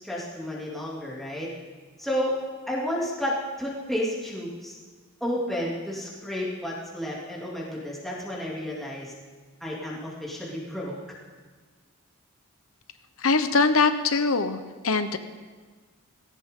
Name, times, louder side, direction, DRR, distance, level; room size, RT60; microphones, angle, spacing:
voice 1, 0.0-1.5 2.0-2.3 2.7-4.8 5.2-9.1 9.6-10.9, equal, ahead, -6 dB, 2.7 m, -31 dB
voice 2, 13.2-15.2, left 4 dB, 75° left, 10 dB, 1.0 m, -22 dB
19.0 x 17.0 x 3.8 m, 1.5 s
head